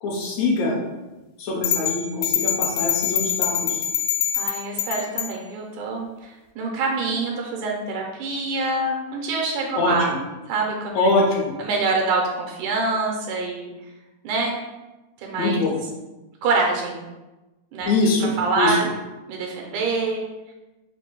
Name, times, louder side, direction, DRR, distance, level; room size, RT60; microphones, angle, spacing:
voice 1, 0.0-0.8 1.4-3.8 9.8-10.2 11.0-11.5 15.4-15.7 17.9-18.3 18.6-18.8, left 2 dB, 70° left, -2 dB, 2.0 m, -23 dB
sound 1, 1.6-5.3, left 9 dB, 85° left, 2.2 m, -24 dB
voice 2, 4.3-10.1 10.5-11.1 11.6-13.7 14.2-14.6 15.2-15.6 16.4-17.0 17.7-17.9 18.4-18.9 19.3-20.2, right 3 dB, 80° right, 0 dB, 2.2 m, -25 dB
5.1 x 2.2 x 4.5 m, 1.1 s
omnidirectional pair, 3.5 m